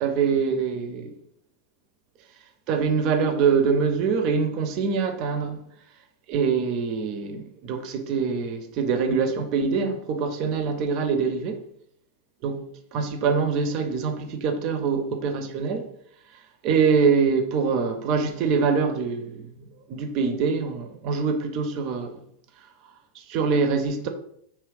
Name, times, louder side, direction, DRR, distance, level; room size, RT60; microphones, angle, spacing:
voice 1, 0.0-1.1 2.7-5.6 6.3-11.6 12.4-12.6 12.9-15.9 16.6-22.2 23.2-24.1, right 5 dB, 40° right, 0.4 m, -24 dB
2.8 x 2.4 x 3.2 m
figure-of-eight pair, 90°, 0 cm